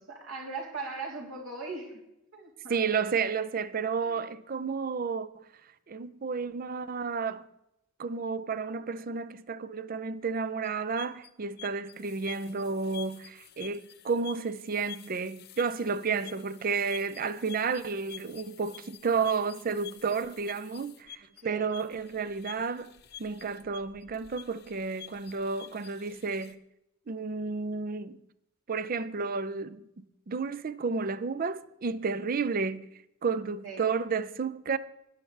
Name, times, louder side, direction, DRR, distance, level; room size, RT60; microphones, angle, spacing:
voice 1, 0.1-2.0 2.3-3.0 4.0-4.2 16.1-16.3 21.4-21.7 29.2-29.3 33.6-33.9, right 3 dB, 70° right, 3.3 m, -40 dB
voice 2, 2.7-5.4 5.9-7.5 8.0-26.6 27.1-28.2 28.7-29.8 30.3-32.9 33.2-34.8, right 5 dB, 40° right, 0.5 m, -31 dB
sound 1, 10.6-26.5, left 11 dB, 50° left, 0.8 m, -49 dB
17.0 x 11.5 x 3.3 m
head